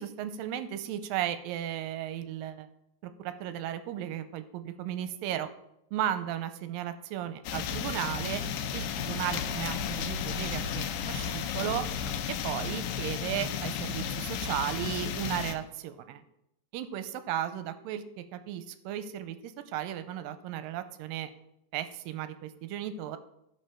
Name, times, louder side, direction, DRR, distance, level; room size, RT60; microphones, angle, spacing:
voice 1, 0.0-2.7 3.0-5.5 5.9-8.4 8.7-11.9 12.4-16.2 16.7-21.3 21.7-23.2, right 11 dB, 80° right, 10 dB, 2.2 m, -35 dB
sound 1, 7.4-15.5, left 7 dB, 75° left, 2.3 m, -33 dB
12.5 x 6.7 x 4.4 m, 0.81 s
omnidirectional pair, 4.2 m